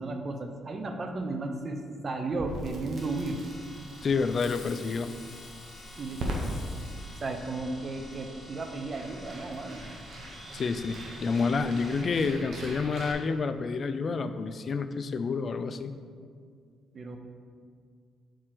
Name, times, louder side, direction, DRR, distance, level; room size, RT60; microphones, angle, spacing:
voice 1, 0.0-3.4 6.0-6.2 7.2-9.9 16.9-17.2, right 3 dB, 40° right, 5 dB, 0.7 m, -34 dB
Crackle, 2.3-13.1, right 1 dB, 65° right, 1.1 m, -41 dB
sound 1, 3.0-12.0, equal, 10° left, 0.9 m, -50 dB
voice 2, 4.0-5.1 10.5-15.9, left 4 dB, 45° left, 10 dB, 0.4 m, -29 dB
Fireworks, 4.2-8.1, left 5 dB, 80° left, 0.9 m, -51 dB
4.6 x 4.5 x 5.9 m, 2.1 s
cardioid pair, 90°, 0 cm